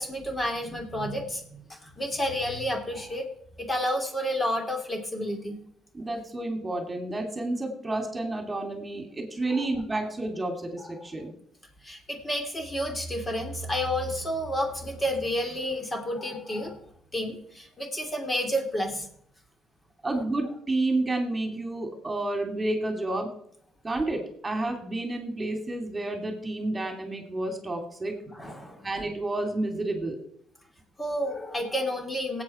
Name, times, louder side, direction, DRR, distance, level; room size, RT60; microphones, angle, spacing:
voice 1, 0.0-3.3 3.6-5.6 9.5-9.7 11.8-16.8 17.1-19.0 28.3-28.9 31.0-32.4, equal, 25° left, 2 dB, 2.9 m, -30 dB
voice 2, 5.9-11.3 20.0-23.3 23.8-28.1 28.8-30.2, right 2 dB, 20° right, 4 dB, 2.7 m, -30 dB
17.5 x 8.6 x 4.4 m, 0.70 s
cardioid pair, 90°, 0 cm